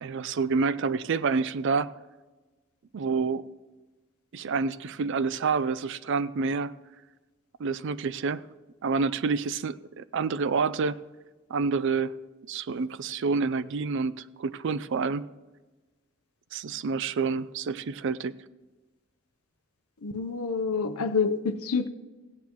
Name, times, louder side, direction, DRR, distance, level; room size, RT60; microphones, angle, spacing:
voice 1, 0.0-1.9 2.9-3.5 4.3-6.7 7.6-8.4 8.8-11.0 11.5-12.1 12.5-15.3 16.5-18.4, right 4 dB, 55° right, 0.4 m, -28 dB
voice 2, 20.0-21.9, left 5 dB, 80° left, 0.7 m, -27 dB
16.5 x 9.4 x 3.0 m
head